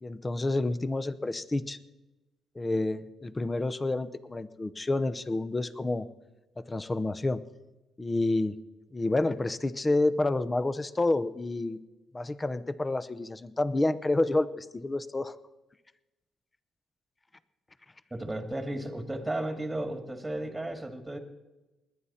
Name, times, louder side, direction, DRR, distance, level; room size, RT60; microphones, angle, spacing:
voice 1, 0.0-1.8 2.6-6.1 6.7-7.4 8.0-8.5 8.9-11.8 12.1-15.3, left 2 dB, 20° left, 15 dB, 0.7 m, -29 dB
voice 2, 18.1-21.2, right 1 dB, 10° right, 6 dB, 1.9 m, -34 dB
21.0 x 9.8 x 4.3 m, 1.0 s
cardioid pair, 90°, 0 cm